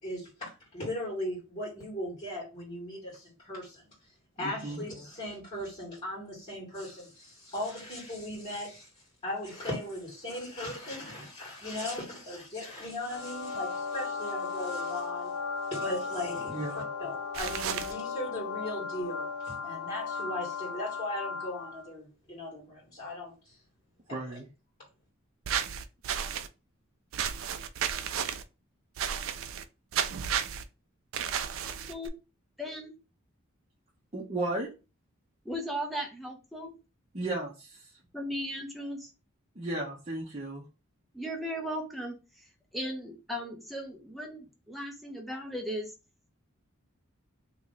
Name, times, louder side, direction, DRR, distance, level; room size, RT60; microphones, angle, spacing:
voice 1, 0.0-3.8 4.4-8.9 9.2-15.3 15.7-23.6 24.1-24.4, left 1 dB, 35° left, 2.0 m, -38 dB
voice 2, 4.4-4.8 16.5-16.9 24.1-24.5 34.1-34.7 37.1-37.9 39.5-40.6, right 2 dB, 30° right, 0.8 m, -35 dB
sound 1, 13.0-21.9, left 5 dB, 90° left, 0.6 m, -36 dB
sound 2, 17.3-17.9 25.4-26.5 27.1-28.4 29.0-29.6 29.9-30.6 31.1-32.1, right 8 dB, 70° right, 0.4 m, -32 dB
voice 3, 31.6-32.1 32.6-32.9 35.4-36.8 38.1-39.1 41.1-42.2 42.7-45.9, equal, ahead, 0.8 m, -37 dB
3.0 x 2.9 x 3.9 m
head